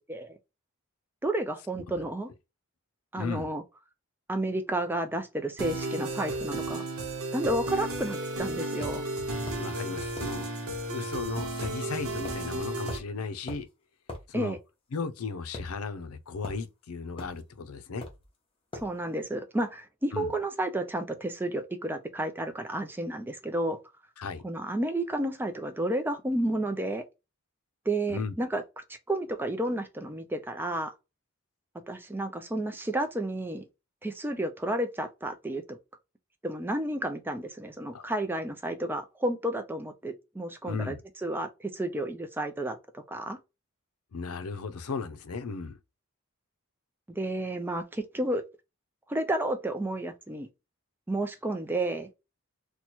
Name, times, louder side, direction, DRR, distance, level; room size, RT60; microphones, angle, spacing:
voice 1, 1.2-2.3 3.1-3.6 4.3-6.8 7.3-9.0 14.3-14.6 18.7-23.8 24.4-27.0 27.9-28.6 29.1-30.9 31.9-33.7 34.0-35.8 36.4-43.4 47.1-48.4 49.1-50.5 51.1-52.1, right 1 dB, 10° right, 0.4 m, -31 dB
voice 2, 3.1-3.5 9.5-10.6 10.9-13.7 14.3-14.6 14.9-18.1 20.1-20.3 24.2-24.4 28.1-28.3 37.9-38.0 40.7-41.0 44.1-45.8, left 4 dB, 80° left, 0.5 m, -36 dB
sound 1, 5.6-13.0, right 2 dB, 75° right, 0.8 m, -33 dB
sound 2, 8.8-9.0 9.5-9.7 10.2-10.4 11.6-11.8 12.2-12.4 12.9-13.1 13.5-13.6 14.1-14.2 15.5-16.1 16.4-16.6 17.2-17.4 18.0-18.3 18.7-18.9, left 2 dB, 25° left, 0.8 m, -40 dB
2.9 x 2.2 x 4.2 m
head